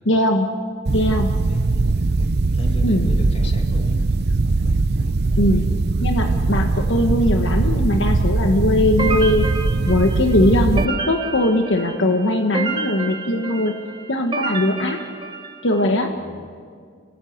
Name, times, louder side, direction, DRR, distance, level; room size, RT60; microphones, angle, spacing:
voice 1, 0.0-0.5 0.9-1.3 2.8-3.1 5.4-5.7 6.0-9.5 9.9-13.7 14.1-15.0 15.6-16.1, left 1 dB, 65° left, 4 dB, 1.4 m, -20 dB
sound 1, 0.9-10.8, right 3 dB, 55° right, 0.6 m, -20 dB
voice 2, 1.4-1.7 2.5-4.2 16.1-16.5, equal, 30° left, 3 dB, 2.5 m, -36 dB
sound 2, 9.0-15.9, right 4 dB, 25° right, 1.6 m, -30 dB
29.0 x 18.0 x 8.1 m, 2.1 s
head